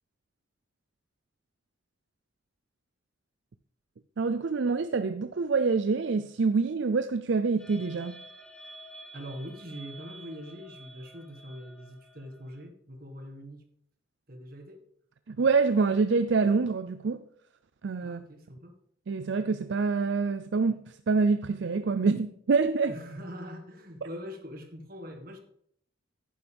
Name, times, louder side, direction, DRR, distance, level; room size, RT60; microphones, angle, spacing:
voice 1, 4.2-8.2 15.3-17.2 17.8-18.2 19.1-20.8 21.1-23.0, right 4 dB, 65° right, 0.5 m, -26 dB
sound 1, 7.6-12.7, right 1 dB, 5° left, 1.0 m, -50 dB
voice 2, 9.1-13.6 14.3-14.8 18.0-18.7 22.9-25.4, equal, 45° right, 1.7 m, -43 dB
11.0 x 9.4 x 3.5 m
head